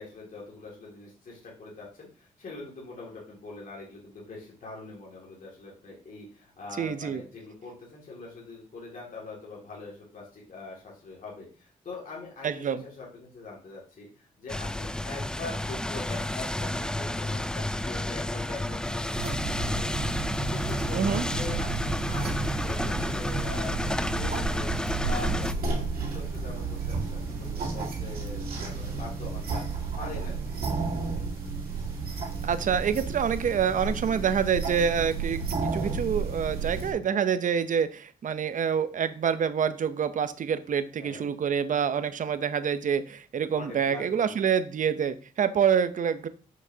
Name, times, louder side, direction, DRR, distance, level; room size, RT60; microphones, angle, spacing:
voice 1, 0.0-20.1 20.4-31.3 41.0-41.3 43.5-44.4, left 3 dB, 60° left, -5 dB, 2.4 m, -43 dB
voice 2, 6.8-7.2 12.4-12.8 20.9-21.2 32.4-46.3, right 7 dB, 60° right, 12 dB, 0.7 m, -27 dB
sound 1, 14.5-25.5, left 1 dB, 5° left, 0.4 m, -31 dB
sound 2, 19.1-36.9, right 4 dB, 75° right, 2.0 m, -32 dB
6.0 x 5.9 x 2.8 m, 0.38 s
cardioid pair, 60°, 15 cm